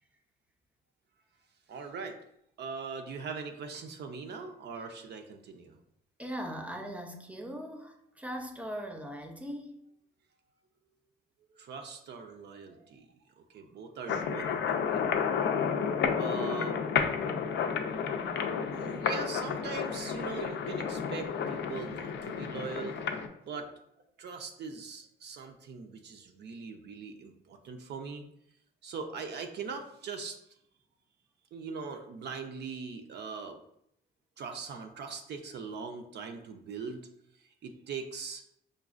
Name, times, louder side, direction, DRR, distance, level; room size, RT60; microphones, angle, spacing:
voice 1, 1.7-2.2 2.6-5.8 11.5-13.1 13.4-15.5 16.2-16.7 18.7-23.0 23.4-23.7 24.2-28.2 28.8-30.4 31.5-33.6 34.4-37.0 37.6-38.4, right 5 dB, 60° right, 4 dB, 0.5 m, -41 dB
voice 2, 6.2-9.7, equal, 5° right, 3 dB, 0.5 m, -40 dB
sound 1, 14.1-23.3, left 6 dB, 65° left, 0.4 m, -31 dB
5.0 x 2.3 x 2.4 m, 0.74 s
cardioid pair, 90°, 20 cm